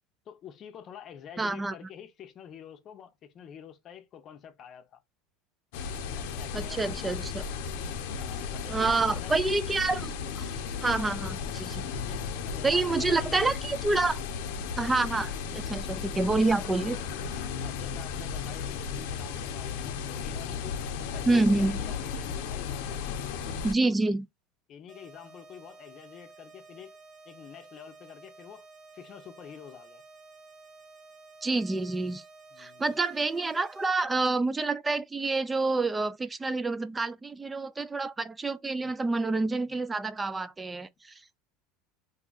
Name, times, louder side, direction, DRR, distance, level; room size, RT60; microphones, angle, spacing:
voice 1, 0.3-5.0 6.1-7.2 8.2-9.3 11.9-13.3 17.6-24.2 24.7-27.0 27.3-28.7 28.9-30.0 32.5-32.8 38.8-38.9, left 9 dB, 40° left, 0.6 m, -48 dB
voice 2, 1.4-1.7 6.5-7.4 8.7-11.8 12.6-14.2 14.8-17.0 21.2-21.8 23.6-24.3 31.4-32.2 32.6-41.4, right 3 dB, 15° right, 0.3 m, -28 dB
sound 1, 5.7-23.7, left 6 dB, 75° left, 0.6 m, -35 dB
sound 2, 24.9-33.9, right 3 dB, 65° right, 1.3 m, -52 dB
2.7 x 2.4 x 3.9 m
supercardioid pair, 135°, 0 cm